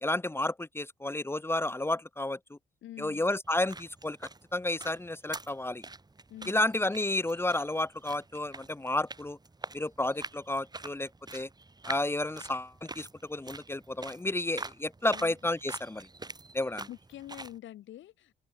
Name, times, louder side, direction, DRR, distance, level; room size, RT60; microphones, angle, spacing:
voice 1, 0.0-2.6 3.0-5.8 6.5-9.4 9.7-11.5 11.9-16.1 16.5-16.9, left 2 dB, 10° left, 0.8 m, -31 dB
voice 2, 2.8-3.2 6.3-6.6 15.1-15.3 16.9-18.3, left 13 dB, 75° left, 1.2 m, -46 dB
sound 1, 3.4-17.6, right 3 dB, 20° right, 3.7 m, -46 dB
open air
cardioid pair, 90°, 20 cm